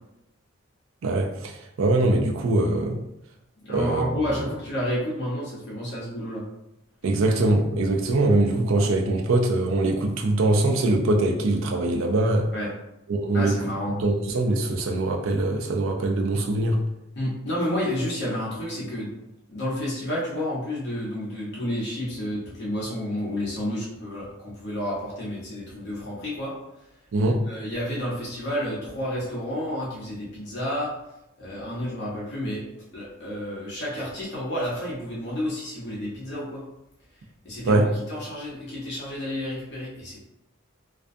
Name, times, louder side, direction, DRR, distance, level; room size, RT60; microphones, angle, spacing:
voice 1, 1.0-3.0 3.7-4.4 7.0-12.5 13.1-13.6 13.9-16.8 27.1-27.4 37.7-37.9, right 2 dB, 75° right, 0.4 m, -23 dB
voice 2, 3.6-6.4 12.5-12.7 13.3-13.9 17.1-19.1 19.5-26.5 27.5-30.9 31.4-32.6 32.9-36.6 37.4-40.2, left 1 dB, 55° left, 0.7 m, -30 dB
2.3 x 2.2 x 2.5 m
head